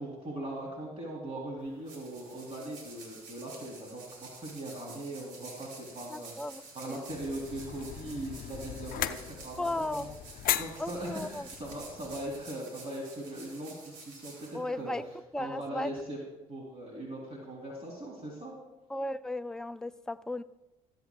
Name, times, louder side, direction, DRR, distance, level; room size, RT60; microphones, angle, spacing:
voice 1, 0.0-6.5 6.7-10.1 10.6-14.9 15.4-16.2 16.5-18.5, right 1 dB, 35° right, -3 dB, 3.6 m, -40 dB
sound 1, 1.6-15.2, right 3 dB, 80° right, 3.0 m, -50 dB
voice 2, 6.1-7.0 9.6-10.1 10.8-11.5 14.5-15.0 15.3-15.9 18.9-20.4, left 1 dB, 5° left, 10 dB, 0.5 m, -35 dB
sound 2, 7.1-12.5, left 12 dB, 55° left, 0.6 m, -38 dB
21.0 x 8.5 x 2.4 m, 1.0 s
hypercardioid pair, 55°, 17 cm